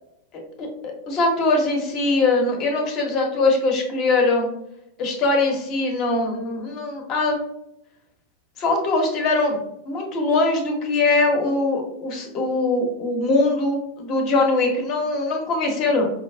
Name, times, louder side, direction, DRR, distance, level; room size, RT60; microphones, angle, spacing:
voice 1, 0.6-4.5 5.0-7.5 8.6-9.6 9.9-16.0, left 2 dB, 35° left, 2 dB, 0.8 m, -22 dB
5.0 x 2.3 x 2.3 m, 0.81 s
figure-of-eight pair, 90°, 0 cm